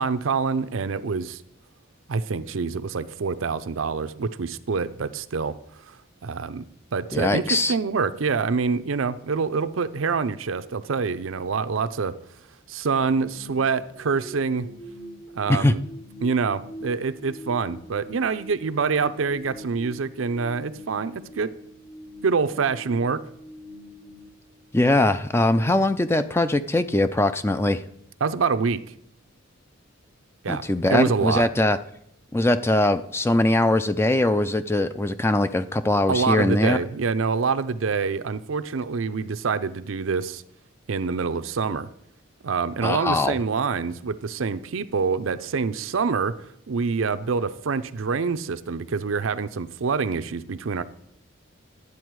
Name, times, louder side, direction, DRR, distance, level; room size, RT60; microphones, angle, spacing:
voice 1, 0.0-1.4 2.1-5.6 5.9-6.0 6.2-6.7 6.9-12.2 12.7-14.7 15.3-15.8 16.2-21.5 22.2-23.2 28.2-28.8 30.4-30.6 30.9-31.5 36.1-40.4 40.9-41.9 42.4-46.4 46.7-50.8, right 5 dB, 75° right, 0.5 m, -26 dB
voice 2, 7.1-7.7 15.5-15.7 24.7-27.8 30.5-31.8 32.3-36.8 42.8-43.4, left 2 dB, 10° left, 0.3 m, -21 dB
sound 1, 12.9-25.0, equal, 70° left, 2.5 m, -44 dB
12.0 x 8.2 x 4.7 m
head